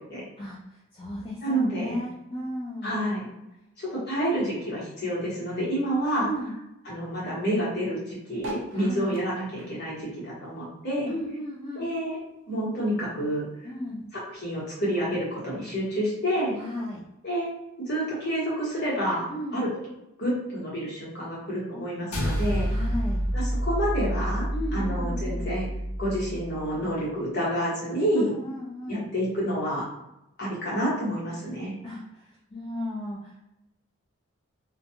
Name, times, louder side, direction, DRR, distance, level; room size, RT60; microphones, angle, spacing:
voice 1, 0.4-3.0 6.2-6.6 8.7-9.2 11.1-11.9 13.6-14.1 16.6-17.0 19.3-19.6 22.7-23.2 24.5-25.4 28.2-29.0 31.8-33.4, left 1 dB, 25° left, -5 dB, 0.4 m, -35 dB
voice 2, 1.4-1.9 2.8-3.2 3.8-6.3 6.8-11.1 11.7-12.2 12.5-13.4 14.3-16.6 17.2-17.5 17.8-19.3 19.5-19.7 20.2-22.7 23.3-25.7 26.0-28.3 28.9-29.9 30.4-31.7, equal, 45° left, -7 dB, 1.2 m, -28 dB
sound 1, 8.4-11.1 11.5-13.0 13.5-13.6 13.7-13.8 14.0-14.4 15.2-15.3, right 1 dB, 55° right, 0.5 m, -44 dB
sound 2, 22.1-26.7, equal, 80° left, 0.8 m, -28 dB
2.4 x 2.3 x 2.8 m, 0.89 s
head